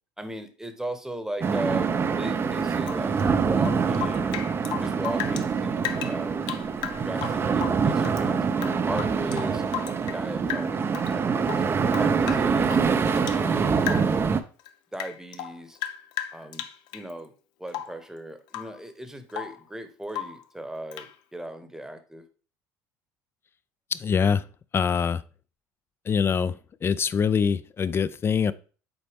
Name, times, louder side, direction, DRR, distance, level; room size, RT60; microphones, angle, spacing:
voice 1, 0.2-4.4 4.8-6.6 7.0-9.6 10.1-10.8 11.1-11.6 12.0-12.8 13.3-14.0 14.9-15.8 16.3-16.7 16.9-17.3 17.6-22.2, right 1 dB, 5° right, 1.0 m, -37 dB
sound 1, 1.4-14.4, right 5 dB, 30° right, 0.6 m, -25 dB
Rain / Drip, 2.8-5.5 5.8-8.2 8.6-10.2 10.5-11.1 11.4-13.5 13.8-14.3 14.6-17.1 17.7-18.0 18.5-18.8 19.1-19.6 20.1-20.5 20.9-21.1, left 11 dB, 70° left, 0.6 m, -35 dB
voice 2, 23.9-24.4 24.7-25.2 26.1-28.5, left 6 dB, 30° left, 0.4 m, -24 dB
7.0 x 4.3 x 3.4 m
supercardioid pair, 85°, 8 cm